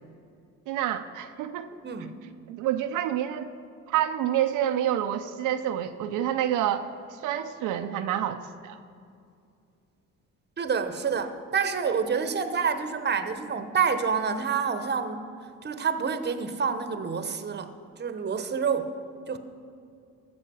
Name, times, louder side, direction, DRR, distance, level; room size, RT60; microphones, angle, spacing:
voice 1, 0.7-1.7 2.5-3.5 3.9-6.9 7.2-8.8, right 11 dB, 90° right, 7 dB, 0.6 m, -28 dB
voice 2, 1.8-2.1 10.6-15.3 15.6-17.7 18.0-18.9 19.3-19.4, right 6 dB, 35° right, 10 dB, 0.9 m, -28 dB
14.5 x 7.0 x 6.2 m, 2.4 s
cardioid pair, 90°, 30 cm